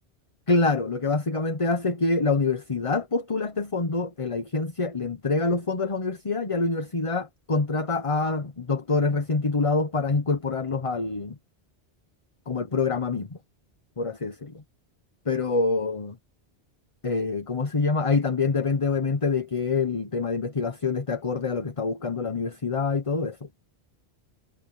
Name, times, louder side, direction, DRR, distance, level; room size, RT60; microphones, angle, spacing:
voice 1, 0.5-11.3 12.5-13.4 14.0-14.6 15.3-16.2 17.0-23.5, left 3 dB, 30° left, 1.1 m, -26 dB
omnidirectional pair, 1.1 m